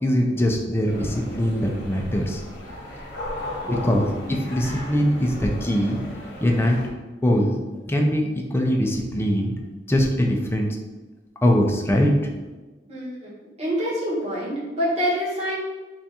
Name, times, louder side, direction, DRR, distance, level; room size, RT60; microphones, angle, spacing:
voice 1, 0.0-2.4 3.3-3.4 3.7-6.0 6.4-6.8 7.2-10.8 11.4-12.3, equal, 15° left, 1 dB, 0.5 m, -22 dB
sound 1, 0.9-6.9, left 1 dB, 65° left, 1.0 m, -36 dB
voice 2, 12.9-13.3 13.6-15.6, equal, 35° right, -8 dB, 1.5 m, -26 dB
3.4 x 2.5 x 4.2 m, 1.2 s
head